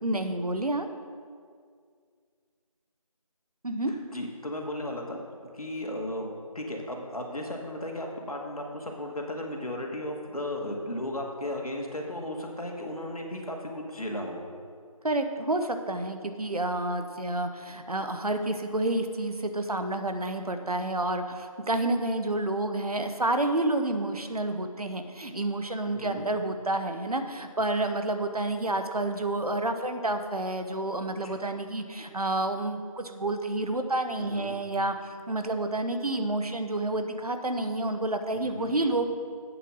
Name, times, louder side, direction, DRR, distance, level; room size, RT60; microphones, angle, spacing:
voice 1, 0.0-0.9 3.6-3.9 15.0-39.1, right 2 dB, 80° right, 7 dB, 1.1 m, -29 dB
voice 2, 3.9-14.4 25.8-26.3 31.2-31.4 34.2-34.6 38.4-38.7, left 1 dB, 75° left, 1 dB, 2.0 m, -35 dB
8.3 x 7.4 x 6.3 m, 2.1 s
figure-of-eight pair, 175°, 19 cm